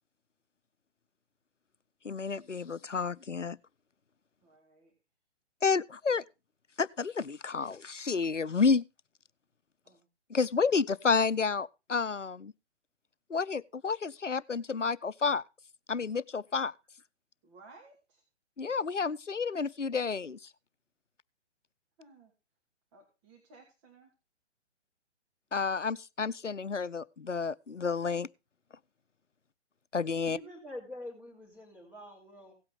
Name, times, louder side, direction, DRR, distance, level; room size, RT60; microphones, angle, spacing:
voice 1, 2.0-3.6 5.6-6.2 6.8-8.8 10.3-12.5 13.3-15.4 15.9-16.7 18.6-20.5 25.5-28.3 29.9-30.4, left 5 dB, 90° left, 0.7 m, -30 dB
voice 2, 4.4-4.9 9.8-10.1 17.4-18.2 22.0-22.3 22.9-24.1, right 3 dB, 25° right, 2.6 m, -57 dB
voice 3, 30.3-32.5, left 1 dB, 5° right, 3.4 m, -45 dB
17.0 x 8.7 x 3.6 m
figure-of-eight pair, 130°, 36 cm